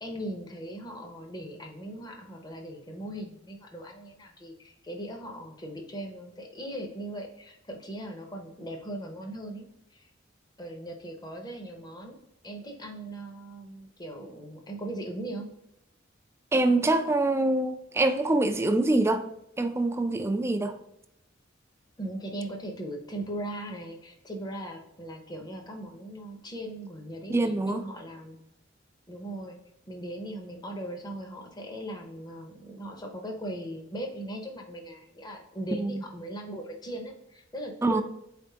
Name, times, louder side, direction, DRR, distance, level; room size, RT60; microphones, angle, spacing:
voice 1, 0.0-10.1 10.6-12.2 12.4-15.5 22.0-28.4 29.1-29.6 29.9-38.0, right 1 dB, 20° left, 0.8 m, -39 dB
voice 2, 16.5-19.3 19.6-20.8 27.3-27.9 35.8-36.0 37.8-38.0, right 2 dB, 15° right, 0.3 m, -25 dB
4.2 x 3.4 x 2.8 m
head